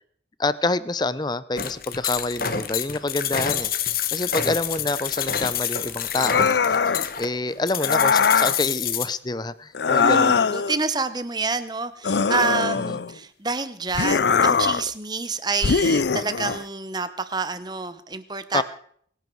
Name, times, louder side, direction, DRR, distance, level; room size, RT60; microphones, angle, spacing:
voice 1, 0.4-3.7 4.1-6.6 7.2-10.4 12.9-13.0 18.5-18.6, left 2 dB, 25° left, 17 dB, 0.6 m, -27 dB
sound 1, 1.6-9.1, left 8 dB, 50° left, 1.1 m, -28 dB
sound 2, 6.2-7.1 7.8-8.6 9.7-10.8 12.0-13.2 13.9-14.9 15.6-16.6, left 5 dB, 70° left, 0.5 m, -21 dB
voice 2, 10.0-18.6, right 4 dB, 20° right, 12 dB, 1.0 m, -28 dB
24.0 x 10.5 x 4.6 m, 0.62 s
head